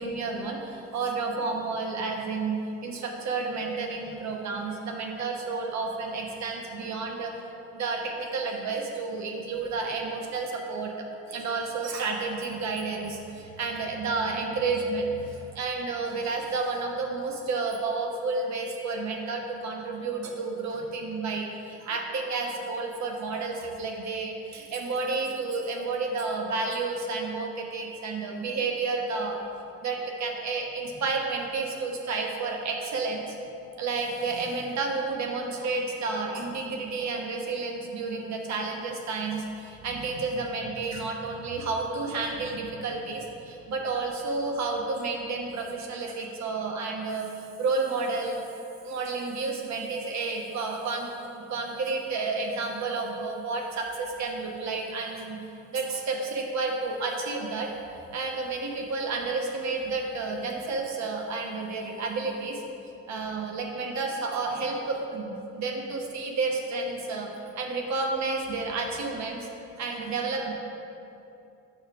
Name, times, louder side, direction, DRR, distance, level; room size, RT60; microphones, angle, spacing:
voice 1, 0.0-7.4 7.7-29.4 29.8-33.3 33.8-48.4 48.8-51.1 51.3-55.4 55.7-57.7 58.1-62.6 63.1-67.3 67.6-69.5 69.8-70.5, right 3 dB, 65° right, 1 dB, 1.0 m, -31 dB
7.3 x 3.4 x 5.6 m, 2.8 s
cardioid pair, 90°, 30 cm